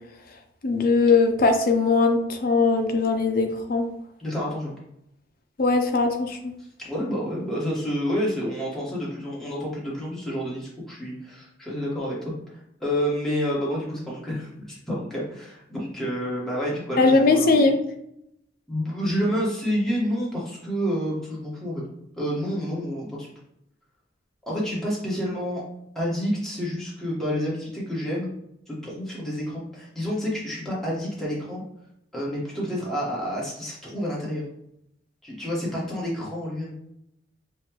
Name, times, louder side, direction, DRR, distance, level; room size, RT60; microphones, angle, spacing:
voice 1, 0.6-3.9 5.6-6.5 17.0-17.8, left 3 dB, 50° left, 5 dB, 0.5 m, -20 dB
voice 2, 4.2-4.7 6.8-12.3 12.8-17.7 18.7-21.8 22.1-23.3 24.5-25.6 25.9-28.3 28.7-31.6 32.1-34.4 35.2-36.7, equal, ahead, -6 dB, 1.3 m, -29 dB
5.5 x 2.4 x 2.9 m, 0.76 s
head